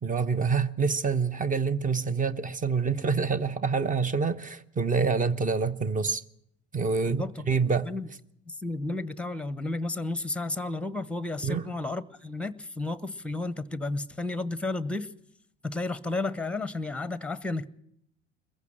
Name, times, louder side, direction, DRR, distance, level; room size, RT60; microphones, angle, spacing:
voice 1, 0.0-6.2 6.7-7.9 11.4-11.7, right 5 dB, 20° right, 1.0 m, -27 dB
voice 2, 7.1-7.5 7.8-8.1 8.5-15.1 15.6-17.7, left 2 dB, 5° left, 0.9 m, -32 dB
22.0 x 14.5 x 8.7 m
figure-of-eight pair, 65°, 35 cm